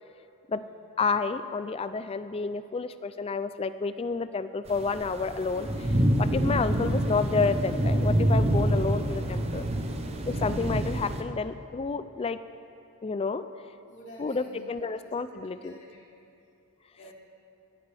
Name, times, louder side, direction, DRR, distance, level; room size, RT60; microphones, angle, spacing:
voice 1, 1.0-9.6 10.3-12.4 13.0-13.4 14.2-15.8, left 4 dB, 25° left, 12 dB, 0.3 m, -30 dB
sound 1, 4.7-11.2, right 1 dB, 30° right, 0.8 m, -27 dB
voice 2, 13.9-14.6 14.9-15.0 15.6-16.0 16.9-17.1, right 1 dB, 55° left, -6 dB, 3.3 m, -50 dB
16.0 x 12.5 x 3.4 m, 2.6 s
head